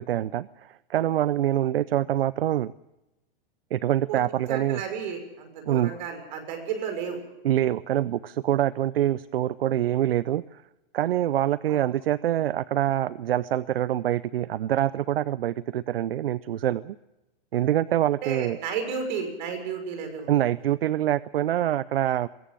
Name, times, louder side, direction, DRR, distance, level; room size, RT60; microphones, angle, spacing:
voice 1, 0.0-2.7 3.7-4.8 5.7-5.9 7.4-10.6 10.9-17.0 17.5-18.6 20.3-22.3, right 12 dB, 80° right, 18 dB, 0.6 m, -25 dB
voice 2, 4.5-7.2 11.7-11.8 17.5-17.6 17.9-20.4, right 6 dB, 50° right, 6 dB, 6.2 m, -33 dB
22.0 x 16.5 x 7.6 m, 0.98 s
hypercardioid pair, 135°, 29 cm